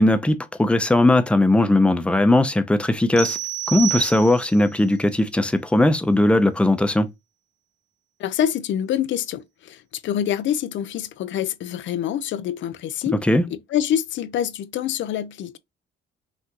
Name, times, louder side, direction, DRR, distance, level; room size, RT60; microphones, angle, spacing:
voice 1, 0.0-3.4 3.7-7.1 13.2-13.5, left 1 dB, 5° left, 0.7 m, -18 dB
sound 1, 3.2-4.7, right 12 dB, 55° right, 1.2 m, -29 dB
voice 2, 8.2-15.6, left 10 dB, 70° left, 0.5 m, -26 dB
5.7 x 2.6 x 2.9 m
cardioid pair, 90°, 20 cm